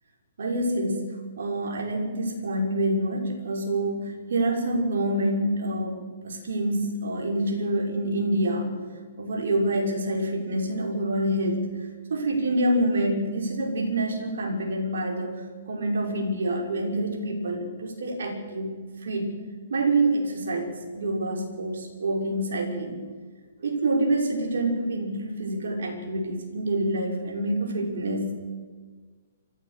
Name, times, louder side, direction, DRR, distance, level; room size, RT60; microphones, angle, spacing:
voice 1, 0.4-8.7 9.2-19.4 19.7-20.7 20.9-23.1 23.6-28.3, right 1 dB, 60° right, 2 dB, 5.8 m, -27 dB
26.0 x 15.5 x 6.8 m, 1.5 s
figure-of-eight pair, 120°, 0 cm